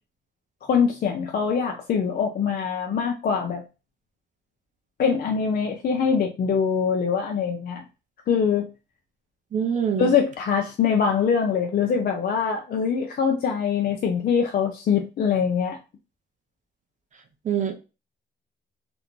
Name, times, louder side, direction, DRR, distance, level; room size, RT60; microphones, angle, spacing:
voice 1, 0.7-3.6 5.0-7.8 8.3-8.7 10.0-15.8, left 6 dB, 50° left, 0.4 m, -23 dB
voice 2, 9.5-10.1 17.4-17.8, right 7 dB, 40° right, 0.5 m, -24 dB
2.5 x 2.1 x 2.9 m
cardioid pair, 90°, 20 cm